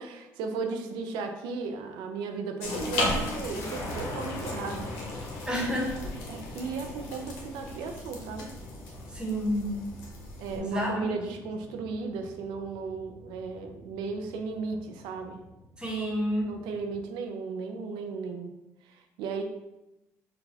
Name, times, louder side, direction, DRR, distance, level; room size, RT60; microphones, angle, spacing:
voice 1, 0.0-4.9 5.6-5.7 6.3-8.5 10.4-15.4 16.4-18.5 18.8-19.4, right 4 dB, 75° right, 5 dB, 0.4 m, -35 dB
sound 1, 2.6-10.6, left 1 dB, 85° left, 0.7 m, -36 dB
sound 2, 3.4-17.0, left 1 dB, 40° left, 0.7 m, -43 dB
voice 2, 5.5-5.9 9.1-9.7 10.6-11.1 15.8-16.5, equal, 10° right, -3 dB, 1.2 m, -29 dB
3.9 x 2.2 x 2.7 m, 0.96 s
hypercardioid pair, 65°, 8 cm